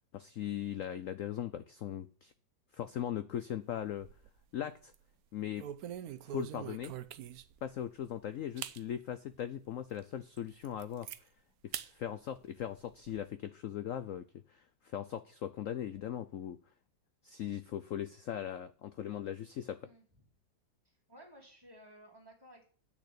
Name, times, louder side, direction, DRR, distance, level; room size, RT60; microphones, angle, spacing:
voice 1, 0.1-2.3 2.7-4.1 4.5-4.9 5.3-5.6 6.3-6.9 7.6-11.1 11.6-16.6 17.2-19.8, left 10 dB, 90° left, 12 dB, 0.7 m, -39 dB
sound 1, 3.7-4.4 4.8-5.0 5.6-7.6 8.1-8.2 8.6-8.8 9.3-9.4 9.9-10.0 10.4-11.2 11.7-11.9 12.3-13.2, right 11 dB, 65° right, 0.9 m, -44 dB
voice 2, 20.8-22.7, equal, 10° right, -1 dB, 3.2 m, -56 dB
8.7 x 6.6 x 8.0 m, 0.41 s
omnidirectional pair, 2.1 m